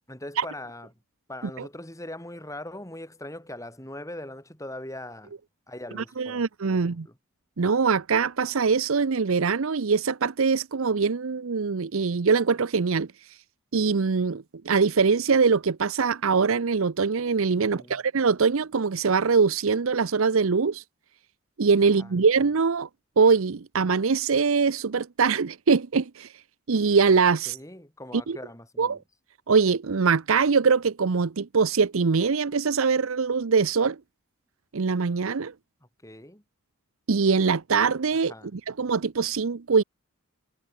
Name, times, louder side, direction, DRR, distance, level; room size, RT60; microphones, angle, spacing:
voice 1, 0.1-0.9 1.3-5.3 5.7-7.1 17.6-18.0 21.8-22.1 27.5-29.0 36.0-36.4 38.3-38.5, left 1 dB, 15° left, 4.6 m, -41 dB
voice 2, 6.2-7.1 7.6-13.1 13.7-20.8 21.6-22.9 23.2-26.3 26.7-27.6 28.3-28.4 28.8-29.0 29.5-34.0 34.7-35.5 37.1-39.8, right 5 dB, 70° right, 0.6 m, -23 dB
head